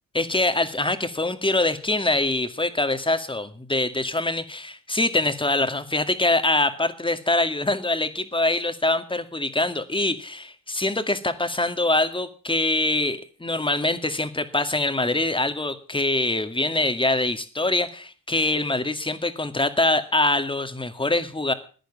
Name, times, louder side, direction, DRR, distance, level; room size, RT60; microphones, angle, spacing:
voice 1, 0.1-21.5, left 2 dB, 15° left, 9 dB, 2.1 m, -24 dB
15.5 x 10.5 x 7.3 m, 0.41 s
cardioid pair, 75°, 35 cm